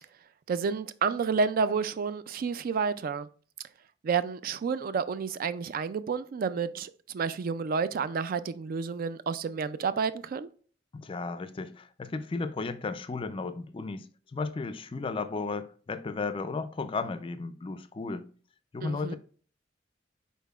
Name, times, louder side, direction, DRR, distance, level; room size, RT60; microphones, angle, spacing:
voice 1, 0.5-3.3 4.0-10.5 18.8-19.2, right 5 dB, 50° right, 0.3 m, -30 dB
voice 2, 10.9-14.1 14.3-18.3 18.7-19.2, left 3 dB, 30° left, 0.4 m, -34 dB
5.5 x 4.1 x 2.3 m
head